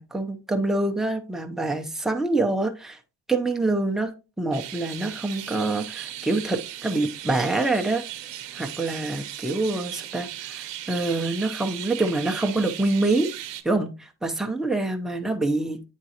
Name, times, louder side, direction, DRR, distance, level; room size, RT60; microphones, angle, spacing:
voice 1, 0.0-3.0 3.3-4.1 4.4-8.0 8.5-13.3 13.6-15.8, right 2 dB, ahead, 0.6 m, -26 dB
sound 1, 4.5-13.6, right 12 dB, 85° right, 0.8 m, -37 dB
9.0 x 3.7 x 2.8 m
cardioid pair, 135°, 42 cm